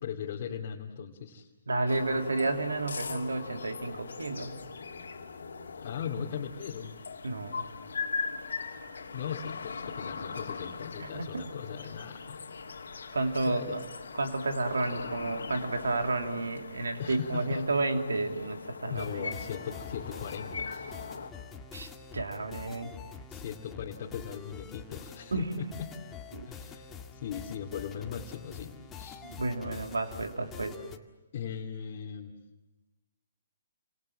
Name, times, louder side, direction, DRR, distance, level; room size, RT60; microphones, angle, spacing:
voice 1, 0.0-1.5 5.8-7.1 9.1-12.4 13.4-13.8 17.0-17.6 18.9-21.2 22.8-23.0 23.3-25.9 26.5-29.2 31.3-32.3, left 7 dB, 45° left, -2 dB, 2.6 m, -39 dB
voice 2, 1.7-4.5 7.2-7.6 11.0-11.4 13.1-13.8 14.2-19.4 21.7-22.9 25.3-25.5 26.3-26.5 29.2-30.8, right 2 dB, 80° right, 5 dB, 3.1 m, -31 dB
sound 1, 1.9-21.3, left 5 dB, 70° left, 2.9 m, -40 dB
sound 2, 19.0-31.0, left 6 dB, 15° left, 2.0 m, -46 dB
29.5 x 27.0 x 7.4 m, 1.0 s
figure-of-eight pair, 135°, 0 cm